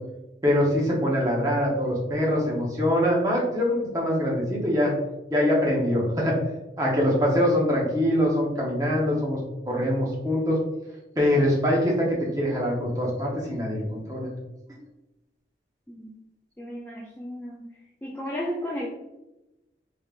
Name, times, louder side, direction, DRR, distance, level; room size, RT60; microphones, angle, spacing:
voice 1, 0.4-4.9 5.3-6.4 6.8-9.4 9.7-10.6 11.2-14.3, equal, 20° right, -3 dB, 0.8 m, -23 dB
voice 2, 16.6-17.7 18.0-18.9, equal, 10° left, -4 dB, 0.3 m, -34 dB
3.4 x 3.2 x 2.4 m, 0.97 s
head